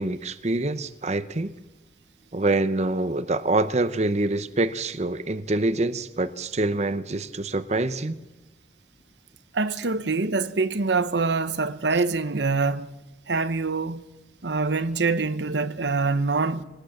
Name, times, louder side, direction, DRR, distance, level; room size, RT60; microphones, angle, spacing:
voice 1, 0.0-1.5 2.3-8.2, right 2 dB, 40° right, 0.8 m, -25 dB
voice 2, 9.5-12.9 13.3-14.1 14.4-16.6, right 3 dB, 75° right, 0.9 m, -25 dB
21.0 x 18.5 x 7.2 m
head